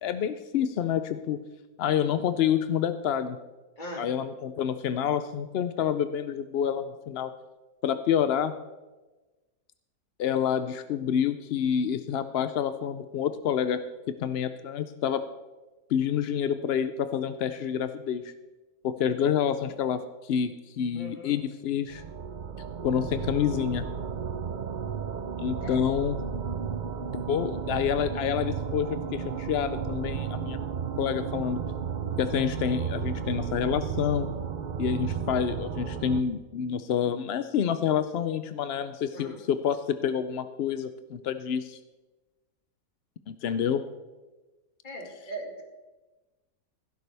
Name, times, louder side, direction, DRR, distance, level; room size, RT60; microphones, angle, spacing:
voice 1, 0.0-1.4 1.8-3.4 4.0-7.3 7.8-8.5 10.2-13.8 14.1-15.2 15.9-18.3 18.8-22.0 22.8-23.9 25.4-26.2 27.3-30.6 31.0-31.6 32.2-34.3 34.8-41.8 43.3-43.8, left 8 dB, 70° left, 11 dB, 0.6 m, -28 dB
voice 2, 3.8-4.1 20.9-21.4 25.6-25.8 39.1-39.4 44.8-45.6, right 1 dB, 30° left, 1 dB, 2.2 m, -39 dB
sound 1, 21.9-36.2, right 7 dB, 65° right, 0.4 m, -33 dB
15.5 x 12.5 x 3.4 m, 1.2 s
omnidirectional pair, 1.6 m